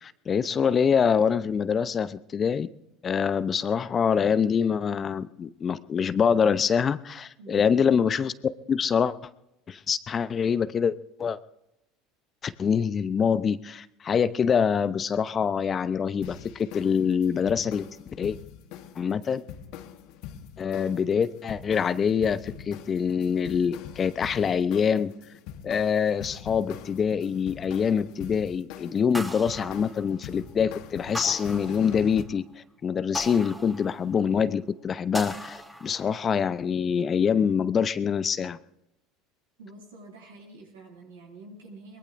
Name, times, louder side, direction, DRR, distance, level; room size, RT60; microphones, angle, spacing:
voice 1, 0.0-2.7 3.0-8.3 8.7-9.1 9.7-11.4 12.4-17.9 18.2-18.4 19.0-19.4 20.6-25.1 25.6-32.4 32.8-38.6, left 7 dB, 35° left, 15 dB, 0.7 m, -25 dB
voice 2, 7.4-7.8 39.6-42.0, right 3 dB, 85° right, -2 dB, 7.8 m, -47 dB
sound 1, 16.2-32.2, left 9 dB, 65° left, 1.2 m, -43 dB
sound 2, 29.1-30.5 31.1-32.3 33.1-34.4 35.1-36.3, equal, 5° right, 2.9 m, -38 dB
23.0 x 21.5 x 2.6 m, 0.87 s
hypercardioid pair, 75°, 0 cm